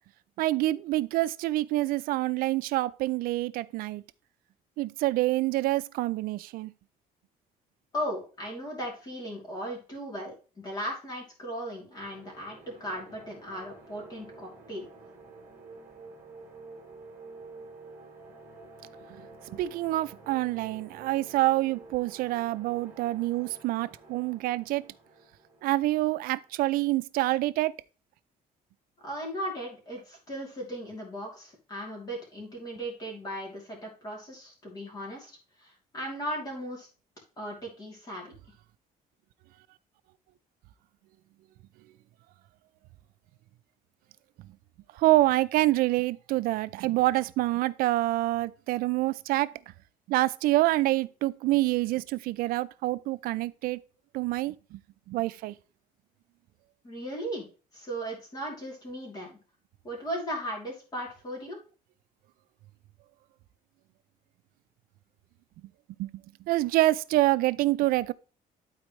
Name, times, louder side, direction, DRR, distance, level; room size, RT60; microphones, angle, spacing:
voice 1, 0.4-4.0 4.8-6.7 19.5-24.9 25.6-27.7 44.9-49.5 50.1-53.8 54.1-54.8 55.1-55.6 66.0-66.1 66.5-68.1, right 17 dB, 70° right, 0.4 m, -26 dB
voice 2, 7.9-14.9 29.0-36.9 37.4-38.3 56.8-57.4 57.7-59.4 59.8-61.6, equal, 25° left, 2.8 m, -37 dB
sound 1, 11.9-26.6, right 3 dB, 15° right, 3.0 m, -50 dB
12.0 x 4.3 x 3.1 m
cardioid pair, 170°, 15 cm